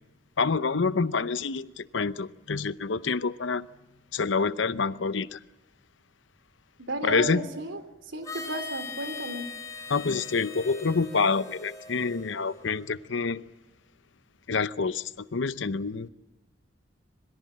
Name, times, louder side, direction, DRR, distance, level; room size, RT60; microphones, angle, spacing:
voice 1, 0.4-3.7 4.1-5.4 7.0-7.5 9.9-13.5 14.5-16.1, left 4 dB, 80° left, 0.8 m, -27 dB
voice 2, 6.8-7.8 8.1-9.5, right 1 dB, 85° right, 3.3 m, -33 dB
Harmonica, 8.2-13.0, left 4 dB, 20° left, 7.8 m, -41 dB
26.5 x 22.0 x 7.5 m
head